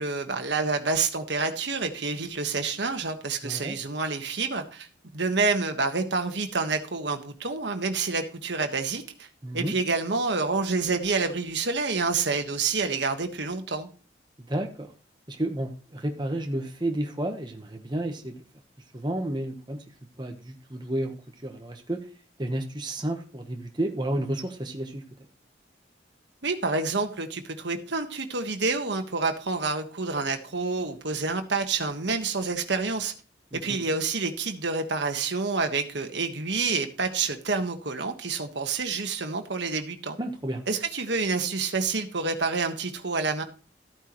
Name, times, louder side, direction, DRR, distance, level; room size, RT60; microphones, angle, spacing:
voice 1, 0.0-4.9 5.1-9.3 9.5-13.9 26.4-33.1 33.5-40.2 40.7-43.4, right 4 dB, 75° right, 1.4 m, -28 dB
voice 2, 3.4-3.8 9.4-9.7 14.4-14.9 15.3-18.4 18.9-19.8 20.2-21.2 21.4-22.1 22.4-25.0 33.5-33.8 40.2-40.6, right 1 dB, 25° right, 1.1 m, -31 dB
13.5 x 9.1 x 3.1 m
head